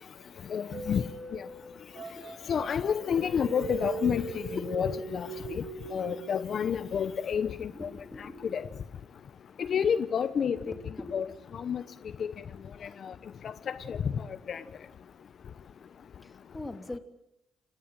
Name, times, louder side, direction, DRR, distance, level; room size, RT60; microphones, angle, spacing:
voice 1, 0.5-1.0 2.5-5.6 5.9-7.9 8.5-8.6 9.6-10.6 11.1-11.3 11.5-11.8 13.0-13.1 13.7-14.0 14.5-14.6, left 7 dB, 55° left, 13 dB, 1.0 m, -29 dB
sound 1, 0.7-6.3, right 5 dB, 60° right, 6.9 m, -40 dB
voice 2, 1.7-2.8 4.5-5.0 5.5-6.2 7.7-8.8 10.3-11.4 16.2-17.0, left 2 dB, 15° left, 7 dB, 3.2 m, -45 dB
29.5 x 18.0 x 9.0 m, 0.84 s
cardioid pair, 90°, 0 cm